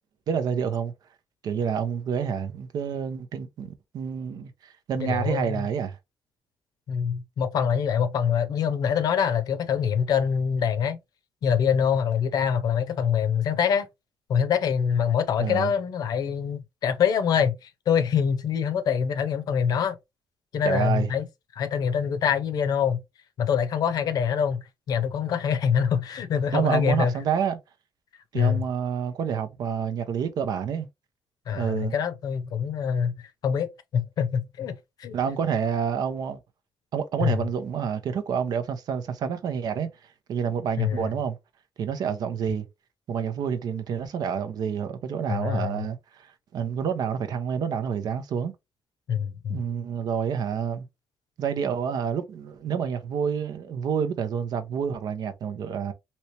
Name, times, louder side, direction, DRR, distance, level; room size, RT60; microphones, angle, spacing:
voice 1, 0.3-0.9 1.4-6.0 15.4-15.7 20.6-21.1 26.5-27.6 28.3-30.9 31.5-31.9 35.1-36.4 36.9-39.9 40.3-41.4 41.8-42.7 43.1-48.5 49.5-50.9 51.4-55.9, right 7 dB, 75° right, 0.6 m, -28 dB
voice 2, 4.9-5.6 6.9-11.0 11.4-13.9 14.3-19.9 20.5-21.3 21.6-23.0 23.4-27.1 28.3-28.6 31.5-33.1 33.4-35.2 37.2-37.4 40.8-41.1 45.3-45.8 49.1-49.6, left 7 dB, 70° left, 0.6 m, -25 dB
3.1 x 2.9 x 2.8 m
cardioid pair, 100°, 7 cm